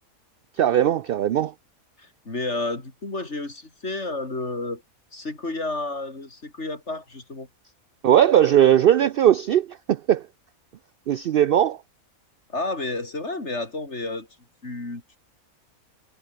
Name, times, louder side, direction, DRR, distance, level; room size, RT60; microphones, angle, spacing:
voice 1, 0.6-1.5 8.0-10.2 11.1-11.8, right 10 dB, 80° right, 0.5 m, -19 dB
voice 2, 2.0-4.8 5.1-7.5 12.5-14.3 14.6-15.2, left 2 dB, 50° left, 4.4 m, -31 dB
omnidirectional pair, 1.5 m